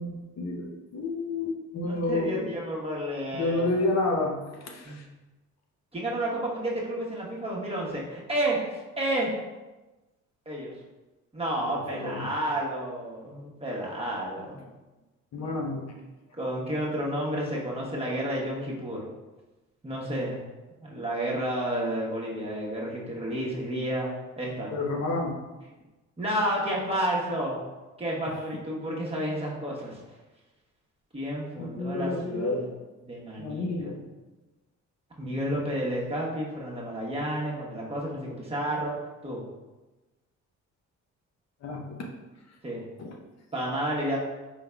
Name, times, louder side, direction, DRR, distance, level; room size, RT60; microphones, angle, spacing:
voice 1, 0.0-2.5 3.3-5.1 11.6-12.3 15.3-15.8 24.7-25.3 31.6-32.6 33.4-34.0 35.2-35.6 41.6-42.0 43.0-43.2, left 2 dB, 60° left, 0 dB, 0.8 m, -30 dB
voice 2, 1.7-3.7 4.8-5.1 5.9-9.3 10.5-10.7 11.3-14.6 16.4-19.1 19.8-20.4 20.8-24.7 26.2-27.6 28.0-30.0 31.1-32.7 33.1-33.7 35.2-38.9 39.2-39.4 42.6-42.8 43.5-44.2, right 1 dB, 20° right, -4 dB, 1.2 m, -31 dB
4.9 x 3.8 x 2.3 m, 1.1 s
cardioid pair, 90°, 30 cm